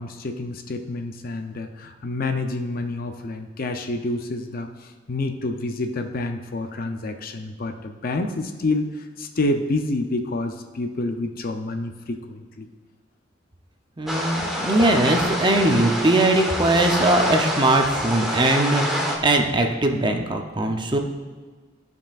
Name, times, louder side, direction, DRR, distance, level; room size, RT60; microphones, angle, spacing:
voice 1, 0.0-12.7, left 2 dB, 50° left, 5 dB, 0.5 m, -28 dB
voice 2, 14.0-21.0, right 1 dB, 25° right, 4 dB, 0.6 m, -20 dB
sound 1, 14.1-19.2, equal, ahead, 1.1 m, -26 dB
13.0 x 5.4 x 2.4 m, 1.4 s
head